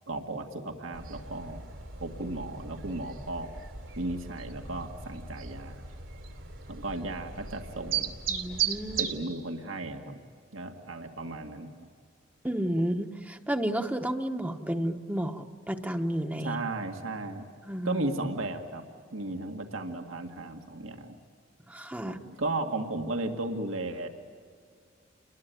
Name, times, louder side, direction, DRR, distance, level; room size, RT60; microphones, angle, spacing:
voice 1, 0.1-1.7 2.0-3.5 4.0-5.8 6.7-8.1 9.0-10.2 10.5-11.9 16.4-17.5 17.8-18.8 19.1-21.2 22.1-24.1, right 2 dB, 90° right, 5 dB, 1.9 m, -35 dB
sound 1, 0.9-9.2, right 8 dB, 70° right, 3.0 m, -37 dB
voice 2, 8.3-9.1 12.4-16.6 17.7-18.0 21.7-22.2, right 1 dB, 10° right, 5 dB, 1.0 m, -31 dB
29.5 x 21.0 x 9.2 m, 2.1 s
head